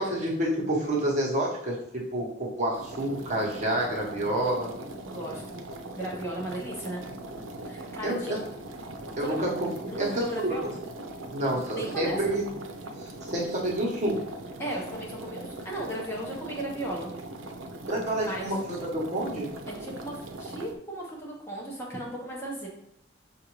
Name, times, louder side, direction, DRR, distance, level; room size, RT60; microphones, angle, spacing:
voice 1, 0.0-4.7 8.0-8.4 9.2-10.2 11.3-12.4 13.0-14.2 17.9-19.5, right 1 dB, 35° right, -4 dB, 1.1 m, -28 dB
sound 1, 2.7-20.8, right 2 dB, 85° right, 0.5 m, -40 dB
voice 2, 5.0-5.6 5.9-7.0 7.6-8.4 9.2-9.5 9.9-10.7 11.4-12.2 14.6-17.1 18.3-18.5 19.7-22.7, right 1 dB, 15° left, -4 dB, 0.9 m, -36 dB
6.0 x 2.5 x 3.0 m, 0.74 s
head